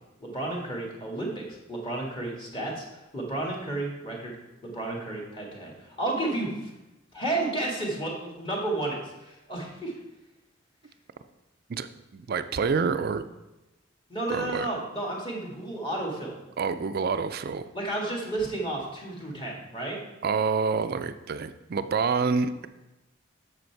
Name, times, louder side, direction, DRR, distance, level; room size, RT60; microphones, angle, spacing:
voice 1, 0.2-2.8 3.1-4.4 4.6-6.7 7.1-9.9 14.1-16.4 17.7-20.0, right 2 dB, 25° left, -1 dB, 1.7 m, -32 dB
voice 2, 11.7-13.2 14.3-14.7 16.6-17.6 20.2-22.7, right 5 dB, 50° right, 11 dB, 0.4 m, -27 dB
7.8 x 6.4 x 4.5 m, 1.0 s
head